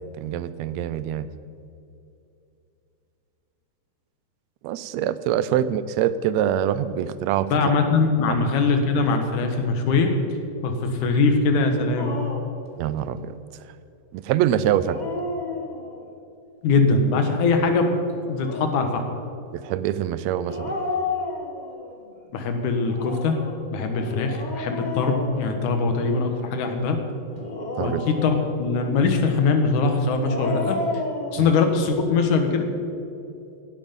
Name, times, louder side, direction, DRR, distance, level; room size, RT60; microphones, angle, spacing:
voice 1, 0.2-1.3 4.6-7.5 8.3-8.4 12.8-13.4 14.1-15.0 19.5-20.7 27.8-28.0 31.4-31.5, right 11 dB, 80° right, 15 dB, 1.7 m, -24 dB
voice 2, 7.5-10.1 10.6-12.1 16.6-17.9 18.3-19.0 22.3-23.4 23.7-27.0 27.8-30.8 31.3-32.7, left 4 dB, 75° left, 5 dB, 2.8 m, -22 dB
Dog, 12.0-12.6 14.7-16.1 18.2-18.9 20.4-21.9 22.8-26.0 27.3-28.7 30.0-31.4, left 3 dB, 50° left, 0.5 m, -32 dB
16.5 x 11.5 x 5.3 m, 2.7 s
omnidirectional pair, 3.5 m